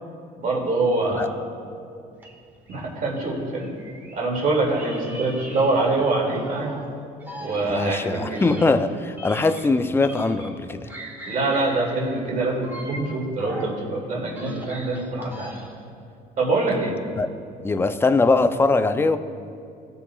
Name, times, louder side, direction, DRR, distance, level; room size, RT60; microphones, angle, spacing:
voice 1, 0.4-1.4 2.7-3.7 4.1-6.8 7.4-8.5 11.3-15.6 16.4-17.0, right 2 dB, 50° right, -2 dB, 2.3 m, -24 dB
sound 1, 2.2-4.3 4.7-6.9 7.2-10.6 10.9-13.8 14.2-15.9, right 1 dB, 10° right, 1.6 m, -41 dB
voice 2, 7.6-10.9 17.2-17.3 17.6-19.2, left 3 dB, 15° left, 10 dB, 0.4 m, -21 dB
19.5 x 6.9 x 2.3 m, 2.5 s
cardioid pair, 110°, 17 cm